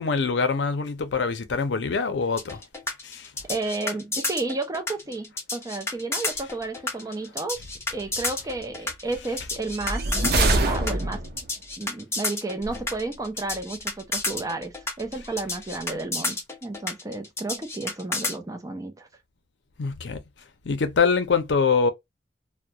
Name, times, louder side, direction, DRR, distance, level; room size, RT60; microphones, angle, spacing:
voice 1, 0.0-2.6 3.0-3.3 19.8-20.2 20.7-21.9, left 5 dB, 75° left, 0.5 m, -24 dB
sound 1, 2.4-18.4, left 2 dB, 15° left, 0.7 m, -31 dB
voice 2, 3.4-10.1 10.4-11.2 11.8-19.1, right 3 dB, 20° right, 0.5 m, -32 dB
sound 2, 9.7-11.5, right 2 dB, 60° right, 0.7 m, -24 dB
2.3 x 2.1 x 2.7 m
head